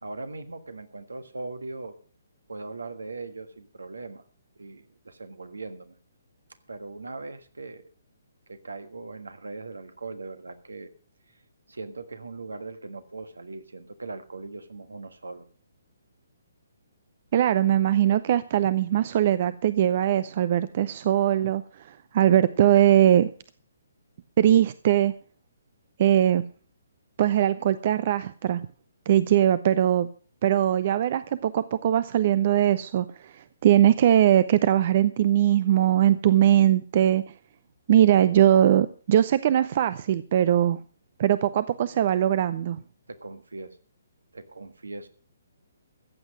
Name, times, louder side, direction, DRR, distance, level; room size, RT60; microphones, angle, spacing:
voice 1, 0.0-2.0 2.5-4.2 4.6-6.0 6.7-7.9 8.5-10.9 11.3-11.4 11.7-15.5 43.1-43.8 44.3-45.1, right 3 dB, 70° right, 11 dB, 1.5 m, -39 dB
voice 2, 17.3-21.6 21.9-23.3 24.4-25.1 26.0-26.4 27.2-28.6 29.1-30.1 30.4-37.2 37.9-40.8 41.2-42.8, right 11 dB, 40° right, 16 dB, 0.5 m, -21 dB
15.0 x 8.1 x 6.3 m, 0.40 s
figure-of-eight pair, 130°, 0 cm